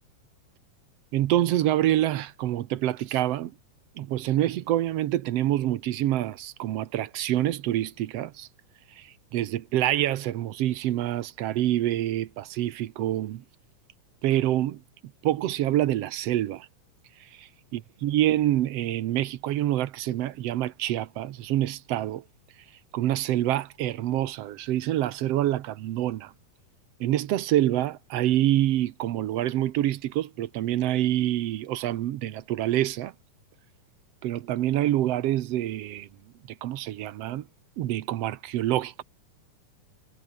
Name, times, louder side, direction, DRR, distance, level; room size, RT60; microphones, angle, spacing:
voice 1, 1.1-3.5 4.0-8.5 9.0-9.1 9.3-13.4 14.2-14.8 15.2-16.7 17.4-22.2 22.9-26.3 27.0-33.1 34.2-36.1 36.6-37.4 37.8-39.0, right 13 dB, 65° right, 1.7 m, -26 dB
omnidirectional pair, 3.5 m